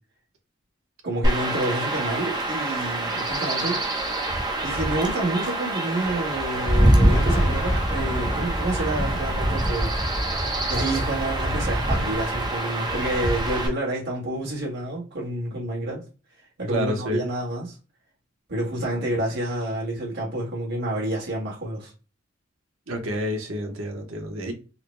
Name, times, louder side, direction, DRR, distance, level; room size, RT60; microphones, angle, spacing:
voice 1, 1.0-3.8 4.6-16.0 16.6-17.7 18.5-21.9, right 1 dB, 60° right, 1.6 m, -29 dB
Chirp tweet / Wind / Stream, 1.2-13.7, right 1 dB, 20° right, 0.8 m, -24 dB
sound 1, 2.1-3.6 3.9-4.3 4.6-4.7 5.1-5.2 6.7-13.4, left 1 dB, 35° left, 1.3 m, -36 dB
voice 2, 16.7-17.3 22.9-24.5, equal, 85° right, 1.1 m, -29 dB
3.7 x 2.2 x 3.1 m
head